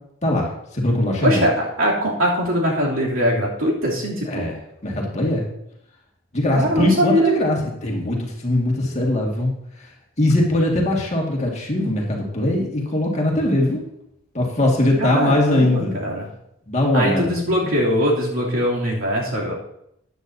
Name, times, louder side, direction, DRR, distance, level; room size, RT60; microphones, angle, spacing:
voice 1, 0.2-1.4 4.3-4.6 4.8-5.5 6.3-9.5 10.2-13.8 14.3-16.0 16.7-17.3, left 1 dB, 30° left, -2 dB, 2.0 m, -21 dB
voice 2, 1.2-4.5 6.5-7.3 15.0-16.3 16.9-19.5, equal, 70° right, -4 dB, 3.0 m, -21 dB
14.5 x 9.5 x 2.7 m, 0.77 s
head